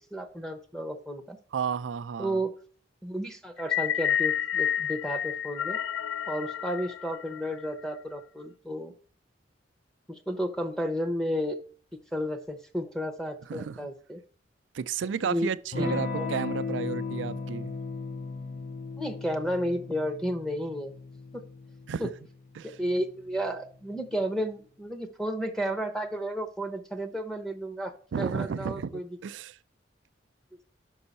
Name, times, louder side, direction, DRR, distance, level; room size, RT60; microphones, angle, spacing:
voice 1, 0.1-1.4 2.2-2.5 3.0-5.8 6.3-8.9 10.1-11.6 12.1-14.2 15.2-15.5 15.8-16.3 19.0-20.9 21.3-21.4 22.0-22.1 22.8-29.1, equal, 5° left, 0.7 m, -32 dB
voice 2, 1.5-2.4 13.4-13.8 14.7-17.7 21.9-22.0 22.6-22.8 28.1-29.6, right 6 dB, 75° right, 0.4 m, -32 dB
sound 1, 3.6-7.9, left 10 dB, 70° left, 0.4 m, -30 dB
Electric guitar / Strum, 15.7-24.0, left 4 dB, 55° left, 2.6 m, -37 dB
5.5 x 5.3 x 4.0 m
head